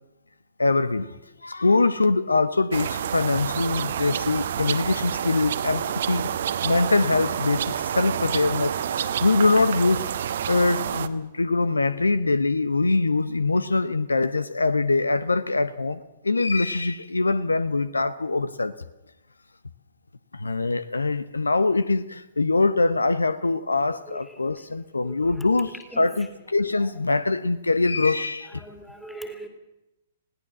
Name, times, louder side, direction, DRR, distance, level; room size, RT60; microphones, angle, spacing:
voice 1, 0.6-1.2 1.4-6.3 6.6-10.1 10.5-18.7 20.3-28.6, left 3 dB, 75° left, 0.8 m, -23 dB
sound 1, 2.7-11.1, right 9 dB, 55° right, 1.0 m, -28 dB
voice 2, 24.1-24.4 25.0-26.3 26.6-26.9 28.4-29.5, right 1 dB, 5° left, 2.7 m, -42 dB
20.5 x 17.0 x 7.4 m
figure-of-eight pair, 115°, 0 cm